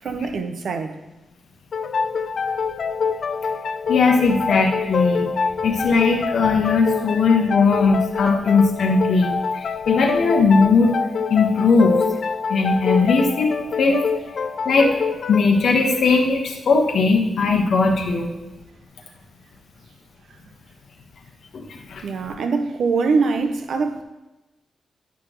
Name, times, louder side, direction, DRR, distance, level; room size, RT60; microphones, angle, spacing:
voice 1, 0.0-1.0 22.0-24.0, right 4 dB, 70° right, 7 dB, 0.8 m, -23 dB
sound 1, 1.7-17.1, left 5 dB, 55° left, 0.4 m, -26 dB
voice 2, 3.9-5.3 5.6-11.0 11.3-12.0 12.5-14.0 14.6-15.0 15.3-18.3 21.5-21.6 21.9-22.0, left 4 dB, 75° left, 2 dB, 1.3 m, -18 dB
10.5 x 6.1 x 3.1 m, 1.0 s
wide cardioid pair, 115°, 0 cm